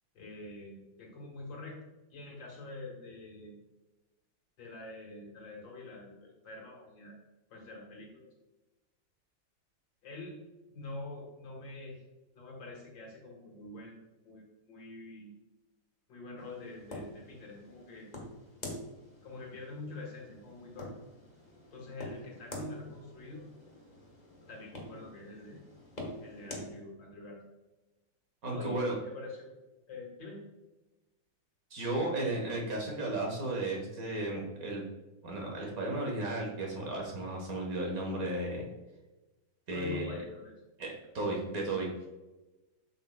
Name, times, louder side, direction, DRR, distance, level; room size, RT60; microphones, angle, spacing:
voice 1, 0.1-1.8 2.1-3.6 4.6-7.2 7.5-8.3 10.0-10.4 10.7-12.0 12.3-15.3 16.1-18.1 19.2-20.9 21.7-23.4 24.5-25.6 26.2-27.4 28.5-29.6 29.9-30.4 39.7-40.6, left 2 dB, 80° left, -1 dB, 2.4 m, -46 dB
sound 1, 16.4-26.7, left 1 dB, 25° left, 1.1 m, -47 dB
voice 2, 28.4-28.9 31.7-34.8 35.2-38.7 39.7-40.1 40.8-42.1, right 2 dB, 50° right, -1 dB, 1.8 m, -34 dB
7.5 x 6.5 x 2.2 m, 1.1 s
omnidirectional pair, 2.0 m